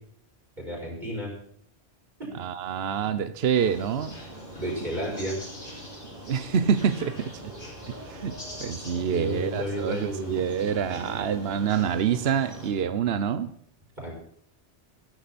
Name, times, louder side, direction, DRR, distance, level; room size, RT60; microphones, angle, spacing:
voice 1, 0.6-1.3 2.2-2.3 4.6-5.4 9.0-10.4 14.0-14.2, equal, 45° right, -1 dB, 5.6 m, -32 dB
voice 2, 2.3-4.1 6.2-7.5 7.9-8.3 8.6-13.5, right 7 dB, 65° right, 12 dB, 1.0 m, -26 dB
sound 1, 3.5-12.7, equal, 50° left, 6.0 m, -42 dB
15.0 x 14.0 x 4.3 m, 0.62 s
omnidirectional pair, 1.2 m